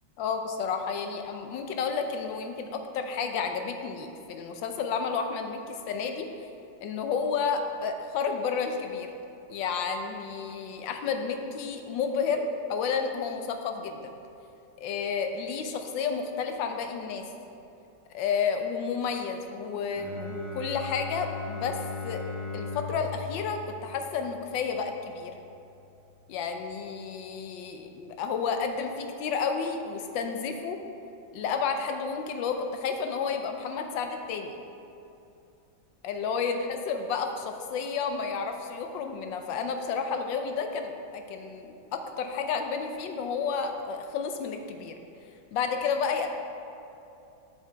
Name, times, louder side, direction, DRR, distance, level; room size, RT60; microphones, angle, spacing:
voice 1, 0.2-6.3 6.8-9.1 9.5-14.1 14.8-17.3 18.1-21.8 22.0-22.2 22.5-25.3 26.3-30.8 31.3-34.6 36.0-45.0 45.5-46.3, left 5 dB, 80° left, 5 dB, 1.4 m, -31 dB
Bowed string instrument, 19.9-25.6, left 4 dB, 15° right, 0.9 m, -39 dB
7.6 x 7.3 x 4.5 m, 2.8 s
omnidirectional pair, 2.0 m